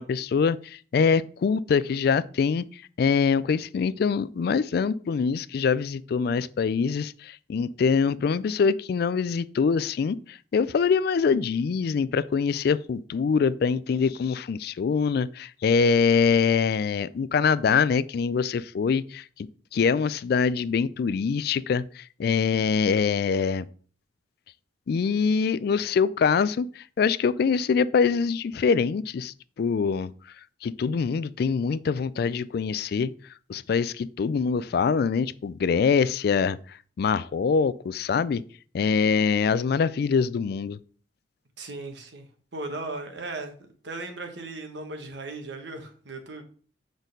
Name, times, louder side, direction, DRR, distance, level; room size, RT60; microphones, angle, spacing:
voice 1, 0.0-19.3 19.7-23.7 24.9-30.1 30.6-33.1 33.5-38.4 38.7-40.8, left 5 dB, 55° left, 0.3 m, -24 dB
voice 2, 41.6-43.5 43.8-46.4, right 2 dB, 70° right, 1.3 m, -37 dB
6.3 x 4.0 x 5.2 m
head